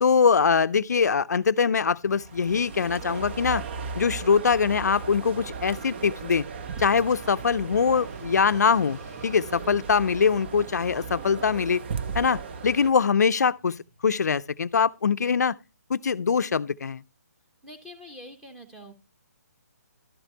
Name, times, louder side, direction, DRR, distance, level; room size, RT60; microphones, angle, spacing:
voice 1, 0.0-3.6 4.0-6.4 6.8-11.8 12.1-15.5 15.9-17.0, left 6 dB, 75° left, 0.4 m, -23 dB
Motorcycle / Traffic noise roadway noise, 1.2-15.3, equal, 75° right, 6.2 m, -54 dB
sound 1, 2.1-12.9, right 5 dB, 40° right, 0.7 m, -37 dB
voice 2, 17.6-18.9, left 1 dB, 5° right, 1.2 m, -44 dB
12.5 x 8.1 x 2.8 m
hypercardioid pair, 155°, 9 cm